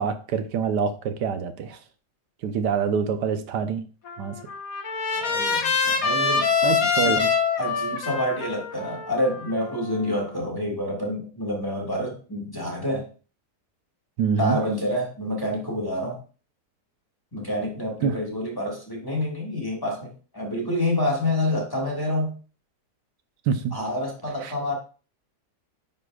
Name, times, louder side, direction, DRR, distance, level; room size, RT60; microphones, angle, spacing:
voice 1, 0.0-1.8 2.4-3.8 4.2-4.4 6.6-7.3 14.2-14.6 18.0-18.1 23.5-23.8 24.4-24.5, right 6 dB, 85° right, 9 dB, 1.3 m, -25 dB
Trumpet, 4.1-10.2, left 5 dB, 60° left, 1.4 m, -25 dB
voice 2, 5.1-6.5 6.9-7.2 7.6-13.1 14.4-16.2 17.3-22.4 23.7-24.7, left 1 dB, 15° left, -1 dB, 1.6 m, -28 dB
9.5 x 5.3 x 2.3 m, 0.37 s
omnidirectional pair, 1.8 m